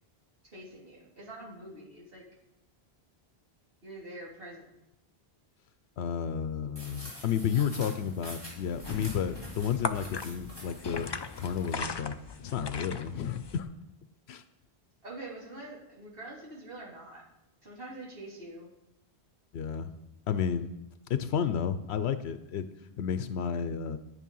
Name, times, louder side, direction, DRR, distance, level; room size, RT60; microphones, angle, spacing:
voice 1, 0.5-2.2 3.8-4.7 15.0-17.2 17.6-18.7, right 2 dB, 60° right, -5 dB, 3.3 m, -45 dB
voice 2, 6.0-11.1 11.4-13.7 14.3-14.4 19.5-19.9 20.3-20.7 21.1-22.6 23.0-24.0, left 8 dB, 85° left, 11 dB, 0.9 m, -31 dB
sound 1, 6.7-11.7, equal, 20° right, 4.3 m, -47 dB
sound 2, 8.5-13.6, left 4 dB, 35° left, 0.4 m, -39 dB
10.0 x 10.0 x 5.5 m, 0.89 s
omnidirectional pair, 1.1 m